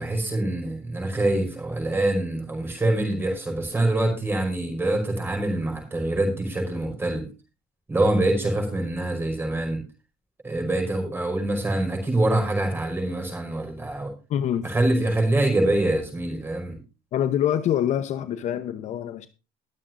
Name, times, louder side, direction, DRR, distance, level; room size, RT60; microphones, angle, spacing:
voice 1, 0.0-7.2 7.9-9.8 10.4-14.1 14.6-16.8, right 1 dB, 15° right, 5.2 m, -25 dB
voice 2, 14.3-14.7 17.1-19.3, left 10 dB, 45° left, 0.9 m, -25 dB
21.5 x 7.4 x 2.6 m
cardioid pair, 160°, 17 cm